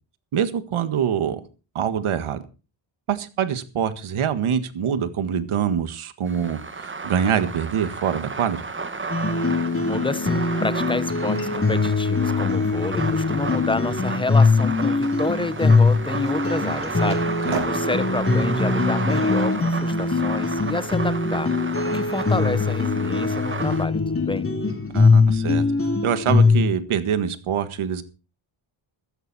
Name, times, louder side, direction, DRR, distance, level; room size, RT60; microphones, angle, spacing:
voice 1, 0.3-1.4 1.8-2.4 3.1-8.6 17.4-17.6 24.9-25.6 26.0-28.0, right 8 dB, 85° right, 1.8 m, -25 dB
sound 1, 6.3-23.8, right 4 dB, 25° right, 1.5 m, -33 dB
sound 2, 9.1-26.7, left 3 dB, 25° left, 2.9 m, -21 dB
voice 2, 9.8-17.3 17.7-21.5 21.8-24.5, left 2 dB, 10° left, 1.0 m, -29 dB
Skateboard, 15.0-20.2, right 5 dB, 65° right, 6.7 m, -39 dB
15.0 x 13.5 x 4.3 m
wide cardioid pair, 120°, 48 cm